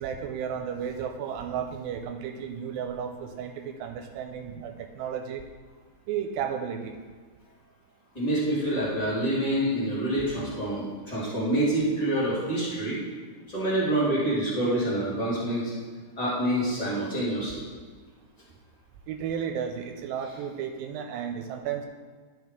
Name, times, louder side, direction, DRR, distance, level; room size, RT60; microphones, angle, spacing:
voice 1, 0.0-5.4 6.1-7.0 19.1-21.9, right 8 dB, 90° right, 5 dB, 2.3 m, -33 dB
voice 2, 8.1-13.0 13.5-15.7 16.2-17.6, right 1 dB, 15° left, -8 dB, 1.8 m, -27 dB
10.5 x 5.9 x 3.6 m, 1.5 s
omnidirectional pair, 4.0 m